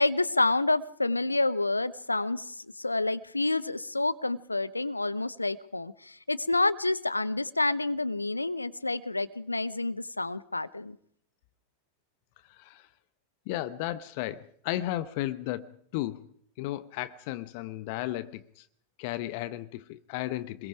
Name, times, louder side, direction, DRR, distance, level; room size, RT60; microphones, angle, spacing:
voice 1, 0.0-11.0, left 2 dB, 85° left, 15 dB, 0.9 m, -28 dB
voice 2, 12.5-12.9 13.5-16.3 16.6-18.7 19.0-20.7, left 15 dB, 45° left, 15 dB, 1.0 m, -34 dB
26.0 x 22.0 x 4.9 m, 0.64 s
figure-of-eight pair, 90°, 0 cm